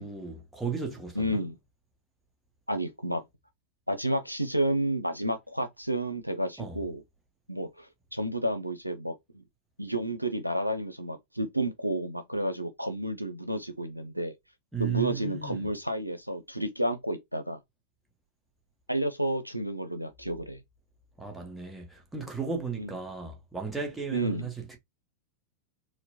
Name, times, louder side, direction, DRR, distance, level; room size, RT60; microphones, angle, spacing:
voice 1, 0.0-1.4 6.6-6.8 14.7-15.7 21.2-24.8, right 5 dB, 10° right, 1.2 m, -35 dB
voice 2, 1.2-1.6 2.7-3.2 3.9-7.0 7.5-7.9 8.1-9.1 9.8-14.3 14.8-17.6 18.9-20.6 22.8-22.9 24.1-24.5, right 1 dB, 90° right, 0.5 m, -31 dB
4.2 x 2.1 x 2.7 m
figure-of-eight pair, 90°, 0 cm